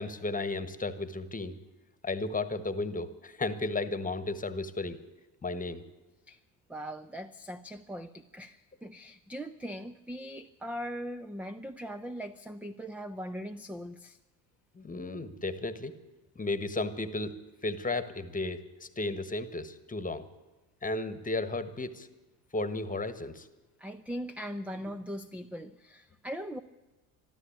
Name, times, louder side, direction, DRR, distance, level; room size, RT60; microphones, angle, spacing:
voice 1, 0.0-1.6 2.0-5.0 5.4-5.8 14.7-15.9 16.3-17.3 17.6-20.3 20.8-22.1 22.5-23.5, left 2 dB, 15° left, 12 dB, 1.4 m, -34 dB
voice 2, 6.7-14.2 23.8-26.6, equal, 5° right, 10 dB, 0.5 m, -40 dB
13.5 x 12.5 x 8.6 m, 1.1 s
supercardioid pair, 80°, 46 cm